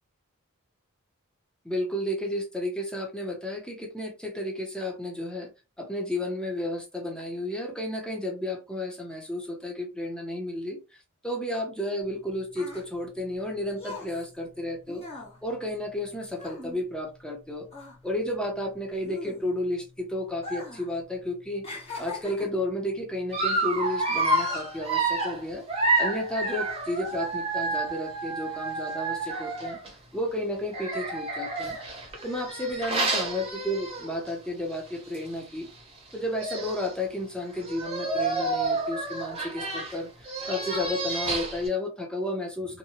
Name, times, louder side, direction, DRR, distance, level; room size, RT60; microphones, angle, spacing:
voice 1, 1.6-5.5 5.8-10.8 11.2-15.0 15.4-17.7 18.0-21.6 22.0-25.6 26.0-29.8 30.1-31.8 32.2-35.7 36.1-42.8, left 1 dB, 5° left, 1 dB, 0.6 m, -32 dB
sound 1, 12.0-17.4 17.7-19.8 20.3-20.9 21.2-22.7 23.4-23.6, left 3 dB, 30° left, 0.9 m, -41 dB
Dog, 23.3-29.9 30.7-34.3 34.7-34.9 35.1-35.2 36.1-36.2 36.4-36.9 37.6-41.7, right 2 dB, 30° right, 0.9 m, -29 dB
2.7 x 2.2 x 2.8 m, 0.29 s
head